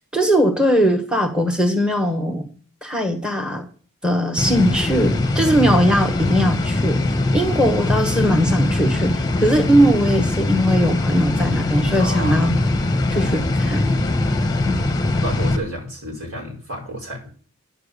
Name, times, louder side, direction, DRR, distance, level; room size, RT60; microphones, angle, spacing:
voice 1, 0.1-2.5 2.8-3.6 4.0-7.0 7.3-12.5 13.1-13.9 14.7-14.8, equal, 5° right, 3 dB, 1.3 m, -19 dB
sound 1, 4.4-15.6, left 2 dB, 20° left, 1.0 m, -21 dB
voice 2, 5.4-5.7 11.9-12.5 15.2-17.4, equal, 80° right, -1 dB, 5.0 m, -31 dB
9.9 x 7.2 x 6.7 m, 0.42 s
head